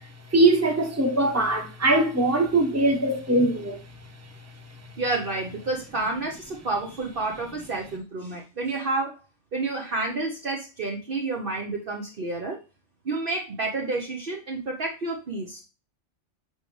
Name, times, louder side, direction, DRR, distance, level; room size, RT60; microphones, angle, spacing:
voice 1, 0.3-3.8, right 2 dB, 15° right, 1.2 m, -21 dB
voice 2, 5.0-9.2 9.5-12.6 13.0-15.6, right 3 dB, 50° right, 1.2 m, -29 dB
8.0 x 5.1 x 3.2 m
omnidirectional pair, 1.2 m